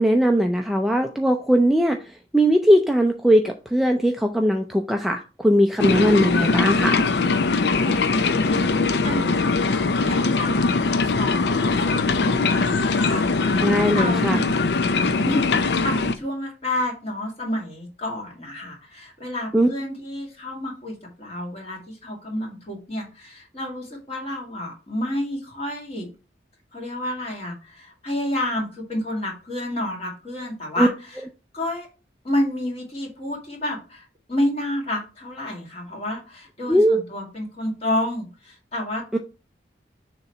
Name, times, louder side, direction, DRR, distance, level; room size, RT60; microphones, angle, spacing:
voice 1, 0.0-2.0 2.3-7.0 13.6-14.4 19.5-19.7 30.8-30.9 36.7-37.0 39.1-39.2, equal, ahead, 3 dB, 0.4 m, -19 dB
sound 1, 5.8-16.1, left 3 dB, 70° left, 0.5 m, -21 dB
voice 2, 7.8-14.6 15.1-26.1 26.7-31.2 31.5-31.9 32.2-39.2, left 1 dB, 35° left, 0 dB, 2.1 m, -30 dB
6.7 x 3.0 x 5.5 m, 0.33 s
head